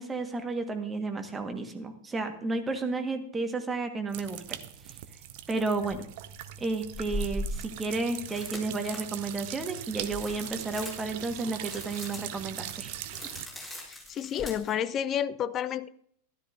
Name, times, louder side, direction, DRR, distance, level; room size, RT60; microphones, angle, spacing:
voice 1, 0.0-4.6 4.9-5.0 5.5-6.0 6.6-13.2, right 3 dB, 15° right, 6 dB, 1.5 m, -32 dB
sound 1, 4.1-13.5, right 12 dB, 50° right, 0.7 m, -41 dB
sound 2, 5.9-6.0 6.9-14.7, left 1 dB, 10° left, 5.7 m, -41 dB
voice 2, 13.9-15.9, left 9 dB, 30° left, 15 dB, 0.5 m, -30 dB
13.0 x 12.5 x 2.6 m, 0.67 s
figure-of-eight pair, 90°, 0 cm